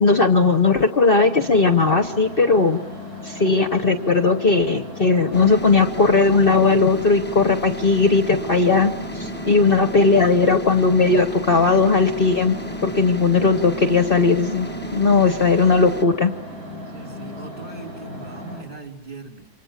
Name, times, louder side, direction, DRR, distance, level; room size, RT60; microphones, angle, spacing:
voice 1, 0.0-2.8 3.2-12.6 12.8-16.3, left 4 dB, 40° left, 7 dB, 1.2 m, -17 dB
sound 1, 1.2-18.6, left 1 dB, 85° right, 6.8 m, -36 dB
sound 2, 5.3-16.0, right 1 dB, 10° left, 1.0 m, -34 dB
voice 2, 16.6-19.5, right 2 dB, 30° right, 2 dB, 3.9 m, -40 dB
29.0 x 26.0 x 7.4 m, 0.83 s
omnidirectional pair, 1.6 m